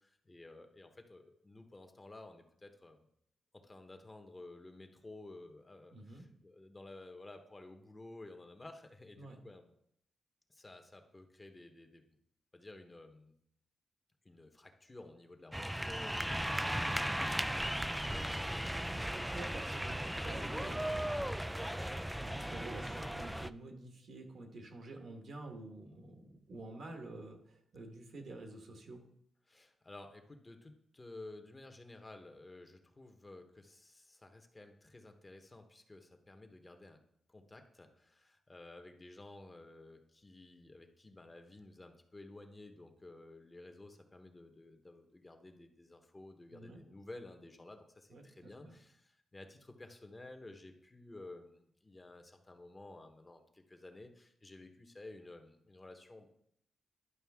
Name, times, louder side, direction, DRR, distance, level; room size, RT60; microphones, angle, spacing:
voice 1, 0.0-3.0 3.5-9.7 10.5-12.0 12.5-13.3 14.2-19.0 29.4-37.0 37.3-56.3, left 2 dB, 25° left, 5 dB, 1.1 m, -53 dB
voice 2, 5.9-6.2 9.2-9.4 18.8-21.2 22.1-29.0 46.5-46.8 48.1-48.8, right 2 dB, 70° right, 3 dB, 1.5 m, -49 dB
sound 1, 15.5-23.5, equal, 5° right, 0.3 m, -37 dB
11.0 x 5.3 x 3.6 m, 0.72 s
cardioid pair, 85°, 0 cm